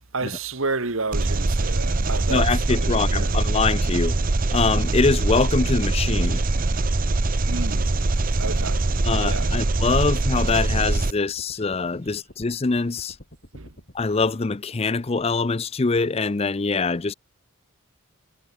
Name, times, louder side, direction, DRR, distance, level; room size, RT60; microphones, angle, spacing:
voice 1, 0.1-3.3 7.5-7.9 8.4-8.8 9.2-9.5 13.5-13.7, right 3 dB, 70° right, 1.9 m, -30 dB
Engine, 1.1-11.1, right 2 dB, 40° right, 0.8 m, -23 dB
voice 2, 2.3-4.2 4.5-6.4 9.0-13.2 13.9-17.1, left 4 dB, 30° left, 0.5 m, -23 dB
sound 1, 8.5-14.3, equal, 50° left, 7.7 m, -47 dB
head